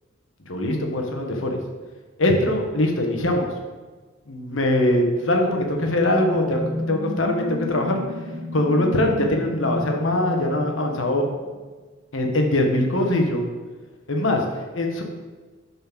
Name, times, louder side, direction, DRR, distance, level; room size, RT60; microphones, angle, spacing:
voice 1, 0.5-1.6 2.2-3.5 4.3-6.6 6.9-8.0 8.5-11.3 12.1-13.4 14.1-14.4 14.7-15.0, left 1 dB, 75° left, 2 dB, 1.3 m, -22 dB
sound 1, 5.2-11.6, left 1 dB, 65° right, 1.6 m, -32 dB
6.9 x 4.4 x 6.0 m, 1.3 s
head